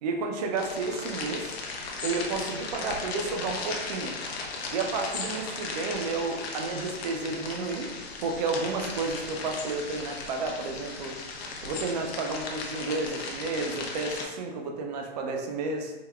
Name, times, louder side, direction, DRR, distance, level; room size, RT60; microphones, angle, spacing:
voice 1, 0.0-1.5 2.0-4.2 4.7-7.9 8.2-11.1 11.6-15.9, right 3 dB, 40° right, 3 dB, 0.4 m, -31 dB
sound 1, 0.6-14.3, left 4 dB, 70° left, 0.7 m, -37 dB
3.5 x 2.1 x 2.3 m, 1.1 s
hypercardioid pair, 145°, 32 cm